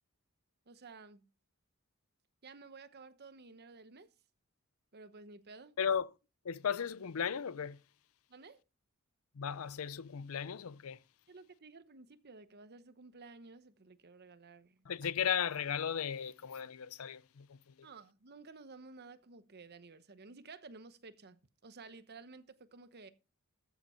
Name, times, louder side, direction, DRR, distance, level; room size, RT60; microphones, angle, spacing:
voice 1, 0.7-1.2 2.4-4.1 4.9-5.7 8.3-8.6 11.3-14.8 17.8-23.1, right 4 dB, 50° right, 1.0 m, -54 dB
voice 2, 5.8-6.1 6.4-7.8 9.3-11.0 14.9-17.9, left 8 dB, 75° left, 0.5 m, -36 dB
14.0 x 7.1 x 4.4 m
head